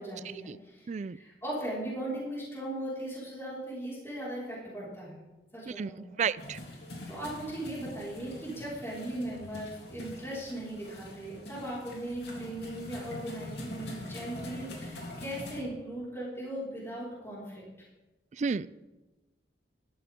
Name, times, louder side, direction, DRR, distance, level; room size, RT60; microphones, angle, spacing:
voice 1, 0.0-5.2 5.5-6.2 7.1-17.6, right 1 dB, 15° left, -7 dB, 4.8 m, -38 dB
voice 2, 6.2-6.6 18.4-18.7, right 6 dB, 40° right, 19 dB, 0.3 m, -31 dB
sound 1, 6.4-15.6, left 1 dB, 70° left, 3.1 m, -44 dB
14.0 x 13.0 x 3.7 m, 1.1 s
head